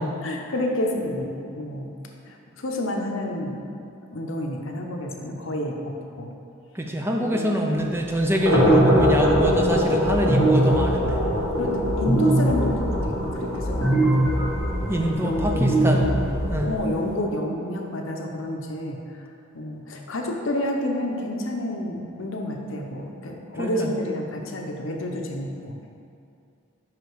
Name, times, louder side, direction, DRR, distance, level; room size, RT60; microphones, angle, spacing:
voice 1, 0.0-1.9 2.2-3.7 4.1-6.3 7.2-7.9 11.6-14.3 15.2-15.6 15.9-16.3 16.6-19.2 19.5-25.8, left 1 dB, 65° left, 1 dB, 0.7 m, -29 dB
voice 2, 6.7-11.2 14.9-16.1 16.5-16.8 23.6-23.9, equal, 10° right, 1 dB, 0.4 m, -25 dB
sound 1, 8.1-17.2, equal, 75° right, 1.4 m, -25 dB
sound 2, 8.5-16.8, right 1 dB, 20° left, 1.6 m, -23 dB
5.6 x 5.0 x 4.6 m, 2.5 s
head